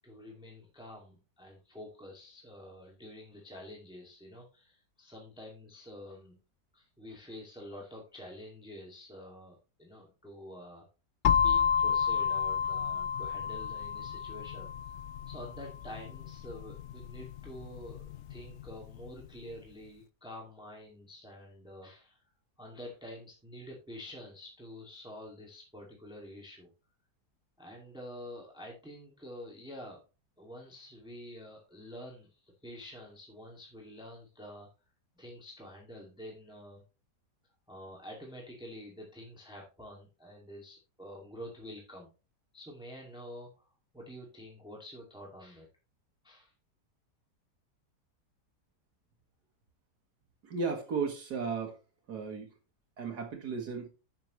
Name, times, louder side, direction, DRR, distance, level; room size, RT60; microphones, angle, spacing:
voice 1, 0.0-6.4 6.7-10.9 11.4-15.0 15.3-18.0 18.3-22.2 22.6-26.7 27.6-30.0 30.4-34.7 35.1-36.8 37.7-42.1 42.5-43.6 43.9-45.7 46.2-46.5, equal, 5° right, -1 dB, 2.0 m, -48 dB
sound 1, 11.2-19.1, left 7 dB, 85° left, 0.6 m, -31 dB
voice 2, 50.4-51.8 52.1-52.5 53.0-53.9, right 5 dB, 70° right, 3 dB, 1.9 m, -35 dB
10.5 x 6.8 x 3.1 m, 0.32 s
omnidirectional pair, 1.8 m